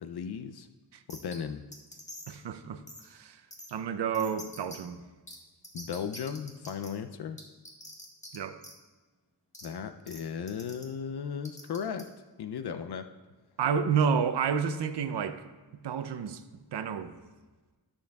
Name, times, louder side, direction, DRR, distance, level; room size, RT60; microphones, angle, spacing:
voice 1, 0.0-0.7 1.1-1.6 5.7-7.4 9.6-12.1 12.4-13.1, left 7 dB, 70° left, 9 dB, 0.6 m, -36 dB
sound 1, 1.1-1.4 1.7-2.4 2.9-3.0 3.5-3.7 4.1-4.8 5.3-5.4 5.6-6.9 7.4-8.4 8.6-8.7 9.5-9.7 10.1-10.2 10.5-10.8 11.4-12.0, left 1 dB, 15° left, 1.6 m, -45 dB
voice 2, 2.3-3.4 3.7-5.0 8.3-8.6 13.6-15.4 15.8-16.4 16.7-17.2, right 6 dB, 85° right, 10 dB, 0.7 m, -30 dB
14.0 x 7.0 x 2.3 m, 1.3 s
wide cardioid pair, 90°, 40 cm